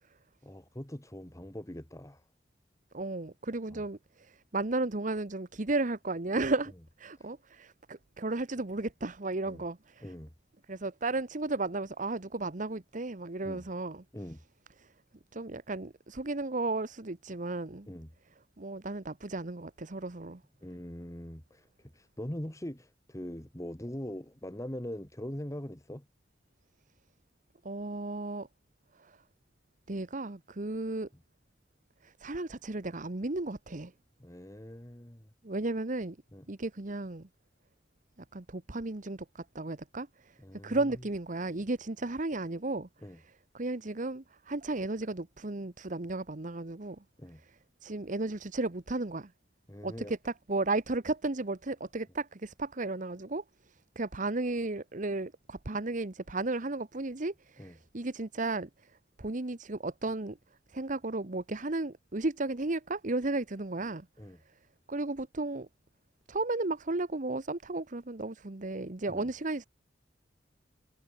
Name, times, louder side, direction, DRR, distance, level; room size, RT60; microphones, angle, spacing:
voice 1, 0.4-2.2 3.7-3.8 7.2-7.3 9.5-9.6 10.0-10.3 13.4-13.6 14.1-14.4 17.9-18.1 20.6-26.1 34.2-35.3 36.3-36.5 40.4-41.0 43.0-43.2 47.2-47.4 49.7-50.1 57.6-57.8 64.2-64.4 69.1-69.3, equal, 15° left, 2.1 m, -42 dB
voice 2, 2.9-6.7 7.0-10.0 10.7-14.0 15.3-17.9 18.6-20.4 27.6-28.5 29.0-29.2 29.9-31.1 32.0-33.9 35.4-36.2 36.5-37.3 38.3-40.3 40.6-42.9 43.5-47.0 47.8-49.3 49.8-53.4 53.9-58.7 59.2-60.4 60.7-64.1 64.9-65.7 66.3-69.7, right 2 dB, 45° right, 1.1 m, -34 dB
head